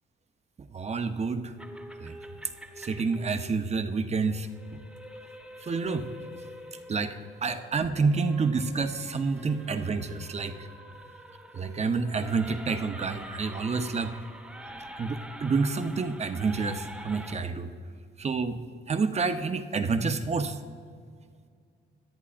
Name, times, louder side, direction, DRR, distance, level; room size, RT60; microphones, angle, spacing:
voice 1, 0.7-1.5 2.0-2.1 2.8-4.5 5.6-6.1 6.9-10.7 11.5-14.1 15.0-17.7 18.2-18.6 18.9-20.6, right 4 dB, 35° right, 8 dB, 0.8 m, -28 dB
sound 1, 1.6-17.3, equal, 5° right, 1.1 m, -46 dB
17.0 x 10.5 x 2.5 m, 2.2 s
cardioid pair, 90°, 20 cm